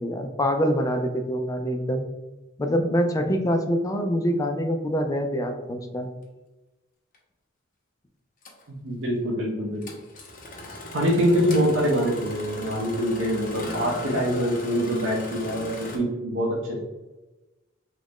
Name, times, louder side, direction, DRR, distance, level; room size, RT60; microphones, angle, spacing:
voice 1, 0.0-2.0 2.6-6.1, equal, 15° left, 5 dB, 0.3 m, -25 dB
Engine starting, 7.1-7.2 8.4-8.6 9.8-16.0, left 1 dB, 40° left, 0.7 m, -37 dB
voice 2, 8.7-9.8 10.7-16.8, equal, 75° right, -4 dB, 0.6 m, -25 dB
3.1 x 2.5 x 3.4 m, 1.1 s
head